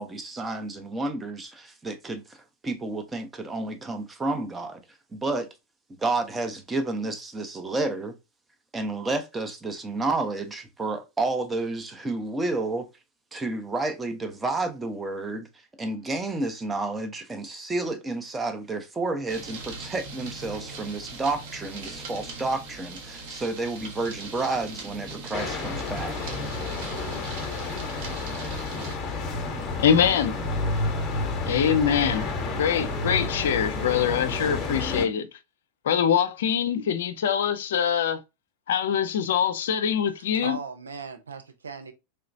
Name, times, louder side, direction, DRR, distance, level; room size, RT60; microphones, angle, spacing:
voice 1, 0.0-4.8 5.1-5.5 5.9-8.2 8.7-12.9 13.3-15.5 15.8-26.3, right 2 dB, 15° right, 0.7 m, -30 dB
sound 1, 19.3-29.0, right 3 dB, 45° right, 1.0 m, -40 dB
sound 2, 25.3-35.1, left 3 dB, 25° left, 1.0 m, -30 dB
voice 2, 29.8-30.3 31.4-32.3 32.6-35.3 35.8-38.2 38.7-40.6, left 8 dB, 60° left, 0.4 m, -24 dB
voice 3, 40.1-41.9, right 5 dB, 70° right, 0.6 m, -38 dB
3.3 x 2.9 x 2.5 m
figure-of-eight pair, 90°, 0 cm